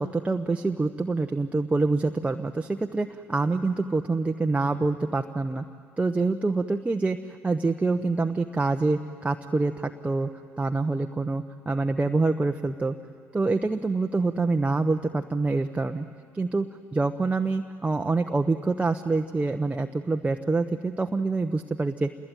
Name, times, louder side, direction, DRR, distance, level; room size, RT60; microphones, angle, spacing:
voice 1, 0.0-5.6 6.0-10.3 10.6-13.0 13.3-16.1 16.3-16.7 16.9-22.1, right 3 dB, 15° right, 5 dB, 1.0 m, -26 dB
28.0 x 21.5 x 9.2 m, 2.3 s
figure-of-eight pair, 55°, 8 cm